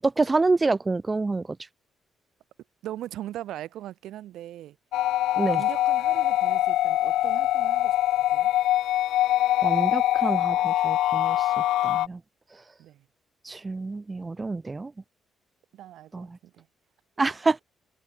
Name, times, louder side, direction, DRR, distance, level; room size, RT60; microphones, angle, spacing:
voice 1, 0.0-1.5 5.4-5.6 9.6-11.5 11.8-12.2 13.4-14.9 16.1-16.4 17.2-17.6, right 3 dB, 20° right, 1.0 m, -27 dB
voice 2, 2.8-4.7 5.4-7.9 8.3-8.5 12.8-13.0 15.7-16.3 16.6-16.7, right 13 dB, 85° right, 6.8 m, -39 dB
sound 1, 4.9-12.1, left 14 dB, 90° left, 1.5 m, -23 dB
cardioid pair, 115°, 0 cm